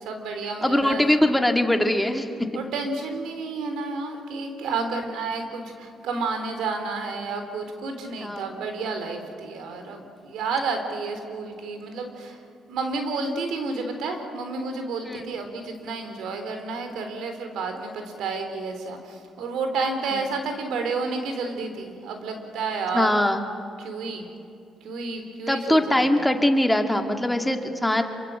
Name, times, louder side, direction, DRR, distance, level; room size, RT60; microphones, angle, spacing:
voice 1, 0.0-1.2 2.5-12.4 12.7-23.1 23.8-24.2 24.8-26.2, right 4 dB, 80° right, 6 dB, 3.8 m, -31 dB
voice 2, 0.6-2.6 8.2-8.5 15.0-15.3 20.1-20.2 22.9-23.5 25.5-28.0, left 1 dB, 5° left, 5 dB, 2.2 m, -22 dB
26.5 x 24.0 x 7.9 m, 2.5 s
cardioid pair, 90°, 0 cm